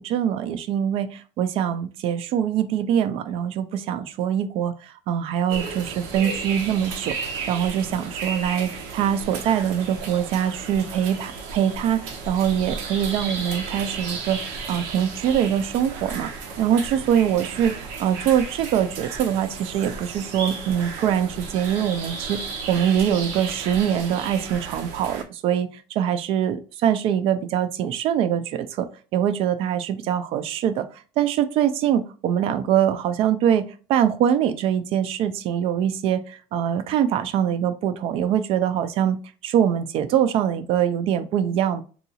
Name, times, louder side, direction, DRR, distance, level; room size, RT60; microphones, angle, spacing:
voice 1, 0.0-7.2 7.5-14.4 14.7-16.3 16.6-17.7 18.0-22.4 22.7-28.9 29.1-30.9 31.2-33.6 33.9-39.2 39.4-41.8, right 9 dB, 40° right, 12 dB, 0.4 m, -23 dB
sound 1, 5.5-25.2, right 4 dB, 90° right, 0.8 m, -34 dB
3.8 x 2.3 x 2.7 m, 0.37 s
cardioid pair, 180°, 14 cm